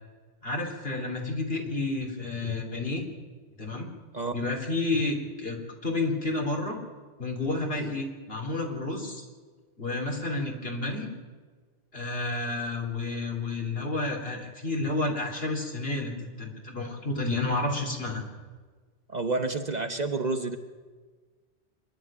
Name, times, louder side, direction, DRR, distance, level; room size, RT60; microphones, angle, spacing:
voice 1, 0.4-3.0 3.6-3.9 4.3-6.8 7.2-9.3 9.8-11.1 11.9-18.2, left 2 dB, 60° left, 1 dB, 3.7 m, -30 dB
voice 2, 19.1-20.6, right 3 dB, 40° right, 6 dB, 1.1 m, -29 dB
25.5 x 11.5 x 8.8 m, 1.5 s
omnidirectional pair, 1.1 m